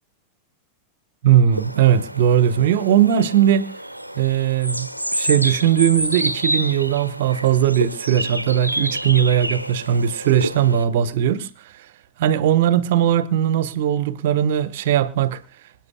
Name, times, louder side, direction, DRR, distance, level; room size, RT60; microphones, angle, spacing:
voice 1, 1.2-3.7 4.2-11.5 12.2-15.4, right 10 dB, 55° right, 1.1 m, -19 dB
sound 1, 1.5-10.8, equal, 90° right, 0.9 m, -28 dB
26.5 x 9.2 x 2.3 m
figure-of-eight pair, 90°, 0 cm